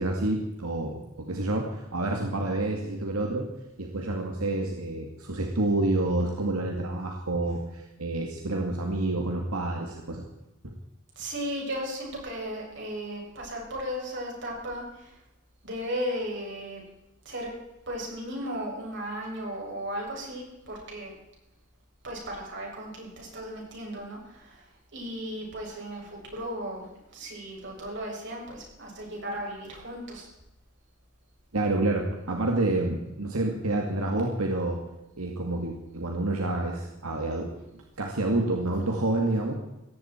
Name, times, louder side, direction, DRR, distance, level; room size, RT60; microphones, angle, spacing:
voice 1, 0.0-3.5 3.8-10.2 10.6-10.7 31.5-34.8 35.2-37.5 38.0-39.5, right 2 dB, 90° right, 1 dB, 2.2 m, -28 dB
voice 2, 11.2-15.2 15.6-16.8 17.3-17.5 17.9-21.1 22.0-26.9 27.1-30.3, equal, 55° right, -2 dB, 7.1 m, -36 dB
18.5 x 15.0 x 4.5 m, 0.94 s
head